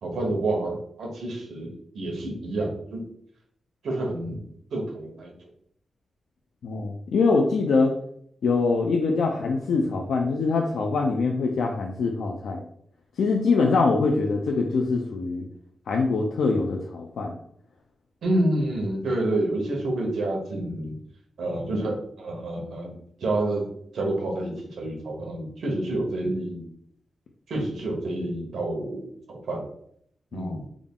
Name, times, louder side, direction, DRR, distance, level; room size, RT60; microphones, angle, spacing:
voice 1, 0.0-3.0 3.8-5.3 18.2-20.9 21.4-22.9 23.2-26.7 27.5-29.7 30.3-30.7, right 1 dB, 80° right, 1 dB, 1.0 m, -28 dB
voice 2, 6.6-7.9 8.4-12.6 13.2-15.5 15.9-17.4 30.3-30.5, left 4 dB, 80° left, 1 dB, 0.4 m, -24 dB
3.6 x 2.4 x 3.6 m, 0.67 s
wide cardioid pair, 165°, 0 cm